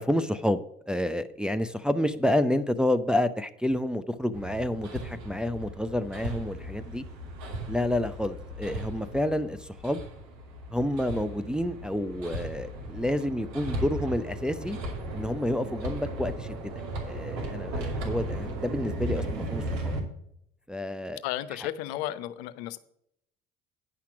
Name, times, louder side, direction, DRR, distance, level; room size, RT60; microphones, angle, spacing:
voice 1, 0.0-7.0 7.7-10.0 10.7-14.8 15.1-16.6 17.1-19.9 20.7-21.2, left 1 dB, 5° right, 10 dB, 0.5 m, -29 dB
Hammer, 4.3-20.0, right 1 dB, 65° right, 2.4 m, -36 dB
voice 2, 21.2-22.8, left 13 dB, 75° left, 14 dB, 0.7 m, -33 dB
9.7 x 5.9 x 5.8 m, 0.74 s
hypercardioid pair, 60°, 31 cm